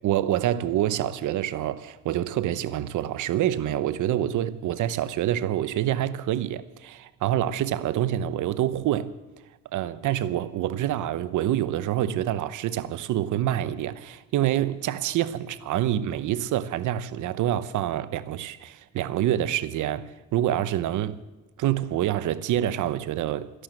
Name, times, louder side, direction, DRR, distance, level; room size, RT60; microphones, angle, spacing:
voice 1, 0.0-9.1 9.7-21.2 21.6-23.6, right 12 dB, 80° right, 0.9 m, -26 dB
14.0 x 11.5 x 7.7 m
cardioid pair, 90°, 30 cm